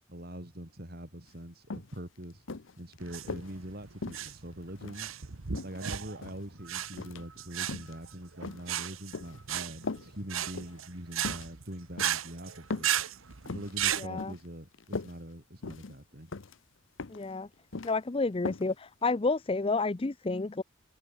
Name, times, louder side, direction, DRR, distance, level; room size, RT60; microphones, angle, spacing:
voice 1, 0.1-2.5 2.8-5.1 5.6-13.1 13.5-16.3, right 1 dB, 50° right, 5.3 m, -43 dB
sound 1, 1.3-1.4 1.7-2.0 2.5-3.5 4.0-5.1 5.5-6.5 6.9-7.3 7.6-8.0 8.4-9.4 9.8-10.1 10.5-10.8 11.2-11.5 12.0-12.2 12.7-13.0 13.3-13.7 14.2-14.5 14.7-15.1 15.6-16.0 16.3-16.6 17.0-17.3 17.5-17.9 18.5-18.7 19.0-19.1, left 3 dB, 70° left, 0.8 m, -39 dB
sound 2, 3.0-14.1, right 10 dB, 80° right, 1.2 m, -35 dB
voice 2, 14.0-14.3 17.1-17.5 17.8-20.6, left 3 dB, 25° left, 0.5 m, -30 dB
head